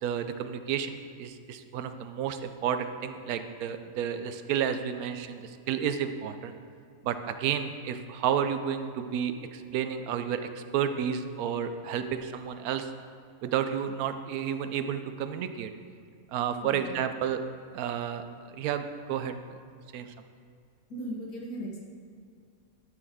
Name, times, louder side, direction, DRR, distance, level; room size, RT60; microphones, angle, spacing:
voice 1, 0.0-6.5 7.0-12.9 13.4-15.7 16.3-17.4 17.7-18.2 18.5-19.3 19.9-20.1, right 8 dB, 80° right, 9 dB, 1.1 m, -31 dB
voice 2, 16.6-16.9 20.9-21.8, equal, 80° left, -3 dB, 1.7 m, -37 dB
12.0 x 6.4 x 3.6 m, 2.3 s
omnidirectional pair, 1.5 m